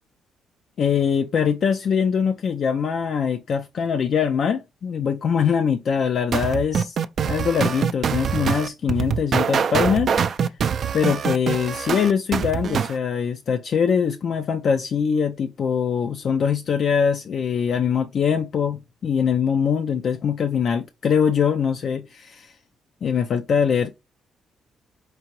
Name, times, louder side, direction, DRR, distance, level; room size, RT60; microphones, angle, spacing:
voice 1, 0.8-7.0 7.2-10.1 10.4-10.5 10.9-22.5 23.0-23.9, left 7 dB, 60° left, 0.3 m, -22 dB
sound 1, 6.3-13.0, right 7 dB, 55° right, 0.3 m, -24 dB
4.6 x 2.8 x 2.9 m
cardioid pair, 90°, 0 cm